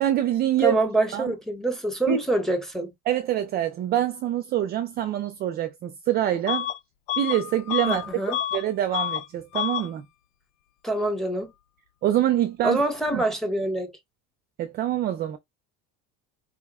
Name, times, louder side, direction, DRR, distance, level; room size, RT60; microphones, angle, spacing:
voice 1, 0.0-0.8 1.1-1.3 2.1-2.2 3.1-6.7 7.2-8.1 8.5-10.0 12.0-12.8 13.1-13.2 14.6-15.4, right 12 dB, 30° right, 0.5 m, -25 dB
voice 2, 0.6-2.9 7.9-8.4 10.8-11.5 12.6-13.9, right 1 dB, ahead, 0.9 m, -25 dB
Bus / Alarm, 6.5-6.8 7.1-8.6 8.9-9.3 9.5-9.9, left 11 dB, 60° left, 0.5 m, -28 dB
4.8 x 2.2 x 3.6 m
cardioid pair, 175°, 31 cm